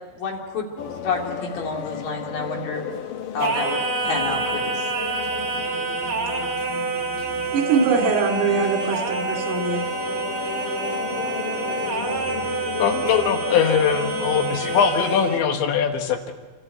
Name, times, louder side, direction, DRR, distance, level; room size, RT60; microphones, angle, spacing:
voice 1, 0.1-0.7 1.0-2.8 3.3-4.9, left 4 dB, 50° left, 0 dB, 3.9 m, -29 dB
sound 1, 0.8-15.3, left 8 dB, 85° left, 1.9 m, -35 dB
Singing, 3.4-15.5, right 3 dB, 50° right, 1.5 m, -27 dB
voice 2, 7.5-9.8, right 4 dB, 85° right, 2 dB, 5.4 m, -22 dB
voice 3, 12.8-16.3, left 7 dB, 70° left, 5 dB, 3.5 m, -21 dB
28.5 x 14.5 x 9.2 m, 1.3 s
omnidirectional pair, 5.8 m